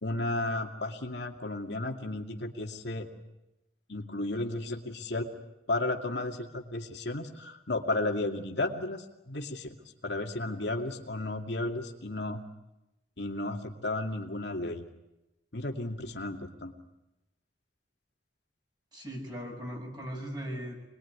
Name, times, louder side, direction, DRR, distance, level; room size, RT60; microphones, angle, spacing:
voice 1, 0.0-3.1 3.9-5.3 5.7-9.7 10.0-12.4 13.2-14.9 15.5-16.7, left 2 dB, 75° left, 2 dB, 2.5 m, -33 dB
voice 2, 18.9-20.8, equal, 25° right, 1 dB, 6.9 m, -38 dB
26.5 x 21.0 x 9.7 m, 0.97 s
head